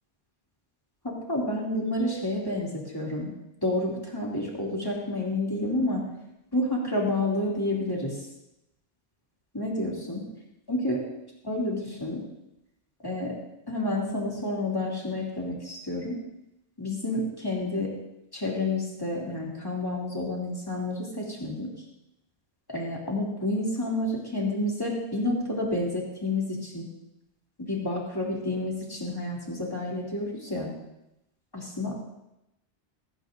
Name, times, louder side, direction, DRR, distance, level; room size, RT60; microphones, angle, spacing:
voice 1, 1.0-3.3 3.6-6.1 6.5-8.3 9.5-10.2 10.7-11.0 11.4-12.2 13.0-13.4 13.7-16.2 16.8-17.9 18.3-21.7 22.7-26.9 27.6-30.7 31.5-32.0, left 1 dB, 20° left, -3 dB, 2.8 m, -29 dB
16.0 x 15.5 x 2.7 m, 0.87 s
omnidirectional pair, 1.1 m